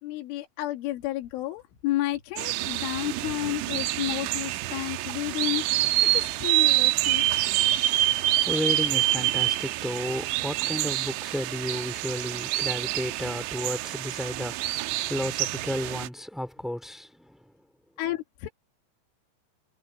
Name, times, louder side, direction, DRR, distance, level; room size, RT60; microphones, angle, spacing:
voice 1, 0.0-5.6 6.0-7.2 18.0-18.5, left 15 dB, 80° left, 4.5 m, -31 dB
sound 1, 2.4-16.1, right 16 dB, 85° right, 3.0 m, -27 dB
voice 2, 8.2-17.5, equal, ahead, 1.7 m, -33 dB
omnidirectional pair, 5.5 m